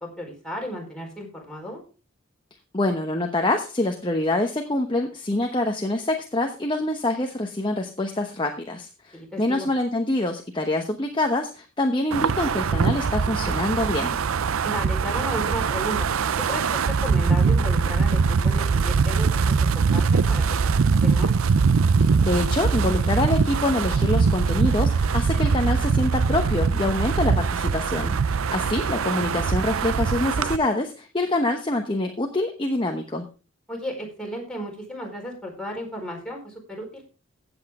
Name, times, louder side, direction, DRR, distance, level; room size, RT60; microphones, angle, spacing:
voice 1, 0.2-1.8 9.1-9.7 14.6-16.1 16.5-19.4 19.7-21.3 33.7-37.0, equal, 5° left, -1 dB, 4.5 m, -34 dB
voice 2, 2.7-14.2 22.2-33.3, left 2 dB, 25° left, 3 dB, 1.0 m, -25 dB
Wind, 12.1-30.6, right 5 dB, 80° right, 0.5 m, -22 dB
15.5 x 8.1 x 3.7 m, 0.35 s
head